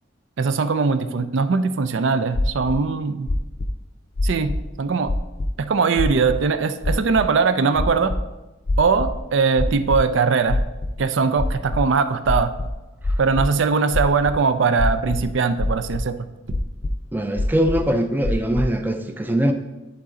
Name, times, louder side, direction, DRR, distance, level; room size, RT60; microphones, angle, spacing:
voice 1, 0.4-3.3 4.2-5.1 5.6-8.1 8.8-10.6 11.0-12.5 13.2-16.2, right 5 dB, 70° right, 10 dB, 0.4 m, -20 dB
sound 1, 2.3-2.8 3.3-3.7 4.2-4.7 5.1-5.5 6.0-6.4 6.8-7.2 7.7-8.2 8.7-9.2 9.6-10.0 10.5-11.0 11.4-11.8 12.3-13.5 13.9-14.4 14.8-15.3 15.6-16.0 16.5-16.9 17.4-17.9 18.2-18.7, left 1 dB, 50° left, 0.5 m, -23 dB
voice 2, 17.1-19.5, right 1 dB, 10° right, 6 dB, 0.4 m, -22 dB
11.0 x 4.1 x 3.8 m, 1.1 s
head